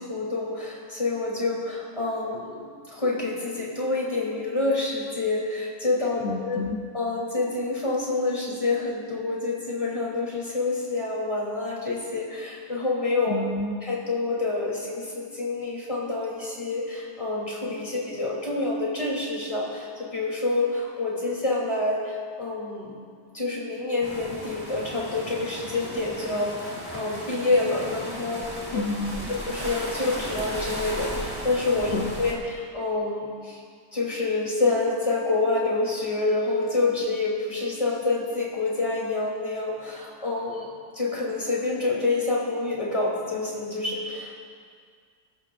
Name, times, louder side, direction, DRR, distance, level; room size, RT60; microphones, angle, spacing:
voice 1, 0.0-6.6 6.9-13.4 13.8-23.0 23.3-28.8 29.4-33.6 33.9-40.7 40.9-44.4, left 3 dB, 20° left, -4 dB, 3.1 m, -27 dB
voice 2, 6.2-6.8 13.3-13.7 28.7-29.3 31.9-32.1, left 3 dB, 55° left, 2 dB, 0.7 m, -29 dB
sound 1, 24.0-32.3, equal, 10° right, 2.2 m, -36 dB
23.0 x 13.5 x 2.5 m, 2.1 s
omnidirectional pair, 1.8 m